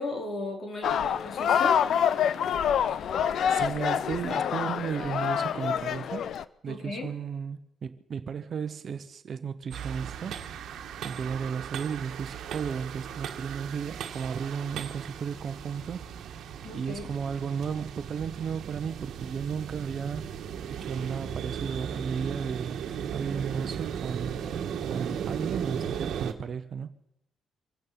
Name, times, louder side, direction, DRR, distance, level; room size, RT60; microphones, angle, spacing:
voice 1, 0.0-1.8 6.7-7.1 16.6-17.1, left 2 dB, 45° left, 4.0 m, -35 dB
sound 1, 0.8-6.4, left 8 dB, 65° left, 0.6 m, -26 dB
voice 2, 3.5-6.3 6.6-10.4 11.0-16.0 16.7-20.3 20.7-22.8 23.1-24.4 24.9-26.9, right 6 dB, 50° right, 1.0 m, -34 dB
sound 2, 9.7-26.3, right 8 dB, 75° right, 1.5 m, -36 dB
25.0 x 9.3 x 5.9 m
cardioid pair, 90°, 0 cm